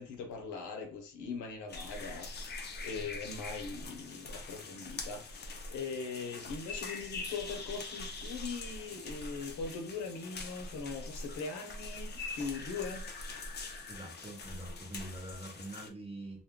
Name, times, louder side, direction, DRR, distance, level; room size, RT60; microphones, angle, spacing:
voice 1, 0.0-13.2, left 4 dB, 75° left, 0.8 m, -41 dB
sound 1, 1.7-15.9, left 3 dB, 35° left, 0.5 m, -43 dB
voice 2, 13.9-16.4, right 1 dB, 20° right, 0.9 m, -44 dB
2.2 x 2.2 x 3.5 m
cardioid pair, 90°, 30 cm